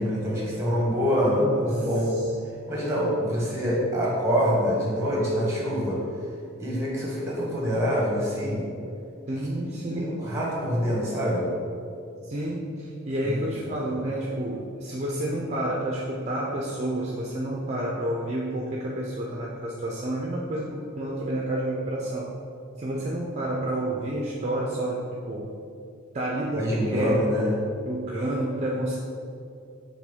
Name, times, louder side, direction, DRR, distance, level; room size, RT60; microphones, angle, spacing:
voice 1, 0.0-2.2 2.7-6.0 6.6-8.7 9.9-11.5 13.2-13.3 26.6-27.5, equal, 15° right, -5 dB, 1.5 m, -25 dB
voice 2, 1.3-2.2 9.3-10.3 12.2-22.3 22.8-25.5 26.1-27.2 27.9-29.0, right 1 dB, 35° right, -2 dB, 0.5 m, -30 dB
7.4 x 3.5 x 3.6 m, 2.5 s
head